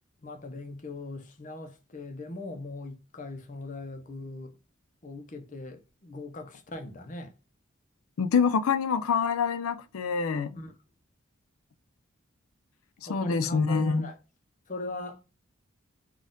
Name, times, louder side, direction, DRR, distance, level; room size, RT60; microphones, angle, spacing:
voice 1, 0.2-4.6 5.0-7.3 10.5-10.7 13.1-14.2 14.7-15.2, left 2 dB, 40° left, 0.6 m, -40 dB
voice 2, 8.2-10.6 13.1-14.0, left 5 dB, 90° left, 0.4 m, -26 dB
4.2 x 2.4 x 3.7 m
head